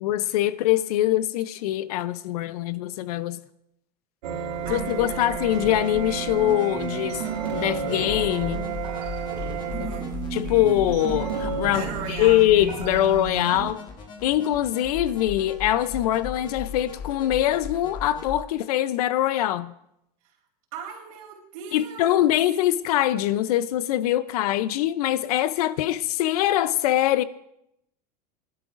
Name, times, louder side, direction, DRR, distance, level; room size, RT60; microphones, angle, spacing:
voice 1, 0.0-3.4 4.7-7.2 7.5-8.6 10.3-13.9 14.2-19.7 21.7-27.2, left 13 dB, 65° left, 0.7 m, -23 dB
sound 1, 4.2-13.7, right 6 dB, 90° right, 2.7 m, -31 dB
voice 2, 4.3-5.4 9.7-10.1 11.7-12.7 20.7-22.4, right 6 dB, 55° right, 3.9 m, -38 dB
sound 2, 4.6-18.4, left 4 dB, 20° left, 1.2 m, -38 dB
24.5 x 12.0 x 2.6 m
supercardioid pair, 175°, 21 cm